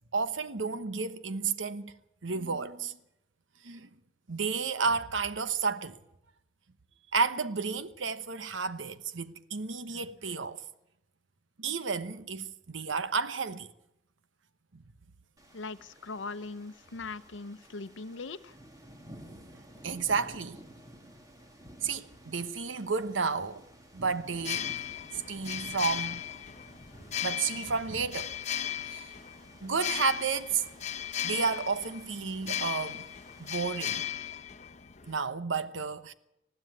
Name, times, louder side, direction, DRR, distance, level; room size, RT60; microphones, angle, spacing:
voice 1, 0.1-1.9 2.2-3.0 3.6-3.9 4.3-6.0 7.1-10.6 11.6-13.7 19.8-20.6 21.8-23.6 23.9-24.6 25.1-26.2 27.2-28.3 28.9-29.1 29.6-30.6 31.2-33.0 33.4-34.0 35.1-36.1, right 5 dB, 85° right, 1.1 m, -32 dB
sound 1, 15.4-34.0, equal, 20° right, 2.4 m, -53 dB
voice 2, 15.5-18.5, left 3 dB, 80° left, 0.8 m, -40 dB
sound 2, 24.3-35.1, left 10 dB, 35° left, 0.9 m, -37 dB
20.0 x 14.5 x 9.4 m
head